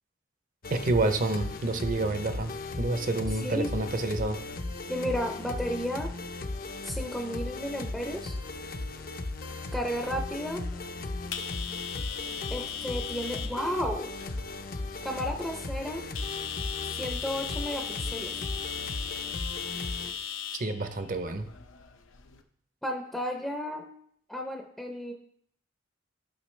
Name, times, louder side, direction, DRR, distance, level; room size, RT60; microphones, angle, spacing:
sound 1, 0.6-20.1, left 2 dB, 50° left, 0.6 m, -37 dB
voice 1, 0.7-4.4 20.6-21.5, right 2 dB, 45° right, 9 dB, 0.7 m, -28 dB
voice 2, 4.9-6.1 6.8-8.3 9.7-10.6 12.5-14.1 15.0-16.0 16.9-18.4 22.8-23.9 24.3-25.1, equal, ahead, 2 dB, 0.5 m, -33 dB
sound 2, 6.3-22.4, left 8 dB, 90° left, 0.7 m, -40 dB
12.0 x 5.8 x 3.2 m, 0.67 s
head